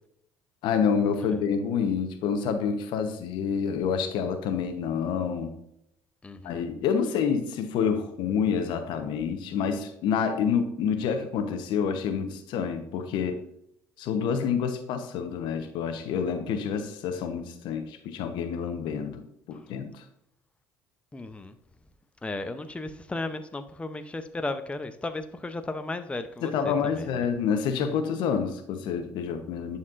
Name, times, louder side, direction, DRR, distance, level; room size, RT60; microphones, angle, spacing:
voice 1, 0.6-5.5 6.4-13.4 14.0-19.2 19.5-20.0 26.4-29.8, left 6 dB, 70° left, 0.9 m, -28 dB
voice 2, 6.2-6.7 19.5-19.6 21.1-21.6 22.2-27.3, left 2 dB, 15° left, 0.6 m, -35 dB
11.0 x 4.3 x 2.5 m
hypercardioid pair, 70°, 8 cm